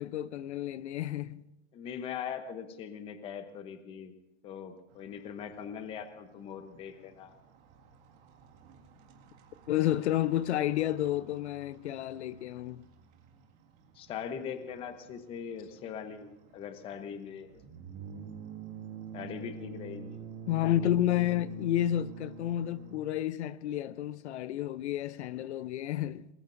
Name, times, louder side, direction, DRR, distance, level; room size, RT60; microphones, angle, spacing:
voice 1, 0.0-1.5 9.7-12.8 20.5-26.3, left 12 dB, 70° left, 0.7 m, -30 dB
voice 2, 1.7-4.1 4.4-7.3 13.9-17.6 19.1-20.2, left 7 dB, 15° left, 0.8 m, -41 dB
sound 1, 4.9-23.0, right 5 dB, 35° right, 2.0 m, -48 dB
27.0 x 20.0 x 2.6 m
supercardioid pair, 170°, 35 cm